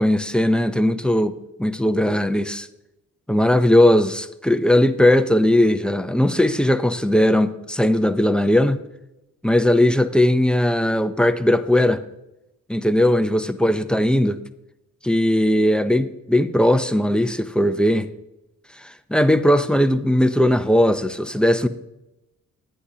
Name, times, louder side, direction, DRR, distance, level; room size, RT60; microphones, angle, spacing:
voice 1, 0.0-2.7 3.3-8.8 9.4-12.0 12.7-14.4 15.0-18.1 18.8-21.7, left 1 dB, 5° left, 0.6 m, -18 dB
15.0 x 10.0 x 2.8 m
cardioid pair, 90°, 30 cm